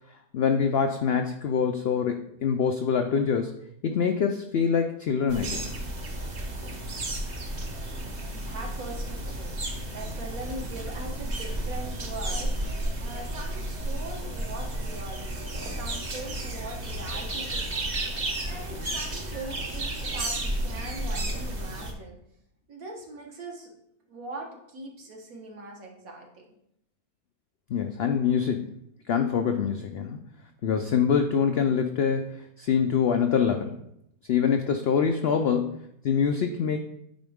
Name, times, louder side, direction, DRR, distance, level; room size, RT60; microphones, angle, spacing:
voice 1, 0.3-3.5 3.8-5.6 27.7-28.7 29.1-30.2 30.6-33.8 34.3-36.8, left 7 dB, 75° left, 6 dB, 0.5 m, -25 dB
sound 1, 5.3-21.9, right 1 dB, 35° right, 0.9 m, -32 dB
voice 2, 8.3-18.0 18.5-22.2 22.7-23.8 24.1-26.5, right 2 dB, 65° right, 0 dB, 1.7 m, -41 dB
9.1 x 4.6 x 3.5 m, 0.76 s
omnidirectional pair, 1.6 m